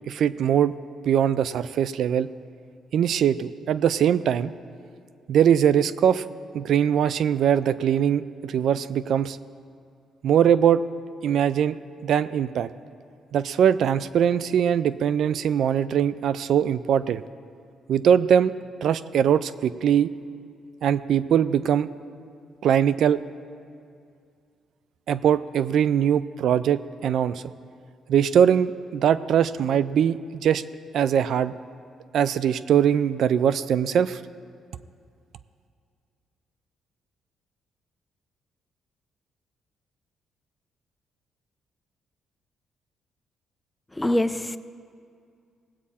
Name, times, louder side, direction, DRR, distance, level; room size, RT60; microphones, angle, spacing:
voice 1, 0.1-0.7 1.1-2.3 2.9-4.5 5.3-6.2 6.5-9.4 10.2-10.8 11.2-11.8 12.0-12.7 13.3-17.2 17.9-18.5 18.8-20.1 20.8-21.9 22.6-23.2 25.1-27.5 28.1-30.6 30.9-31.5 32.1-34.2, right 9 dB, 70° right, 15 dB, 0.3 m, -21 dB
voice 2, 43.9-44.6, left 1 dB, 10° left, 12 dB, 0.4 m, -24 dB
18.5 x 8.5 x 4.2 m, 2.3 s
cardioid pair, 90°, 0 cm